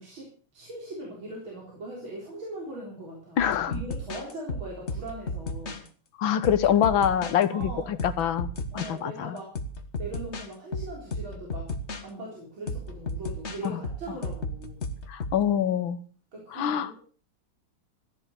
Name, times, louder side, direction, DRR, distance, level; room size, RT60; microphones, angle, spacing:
voice 1, 0.0-5.9 7.5-8.1 8.7-9.5 10.0-11.7 12.0-14.9 16.3-17.0, right 1 dB, 65° right, -2 dB, 4.6 m, -40 dB
voice 2, 3.4-3.7 6.2-7.7 8.0-8.5 8.7-9.3 13.6-13.7 15.1-16.0 16.5-16.9, left 9 dB, 70° left, 13 dB, 1.7 m, -24 dB
sound 1, 3.4-5.9 6.4-8.9 9.4-12.0 12.7-15.4, left 2 dB, 35° left, 1.6 m, -34 dB
14.5 x 10.5 x 6.6 m, 0.41 s
omnidirectional pair, 2.3 m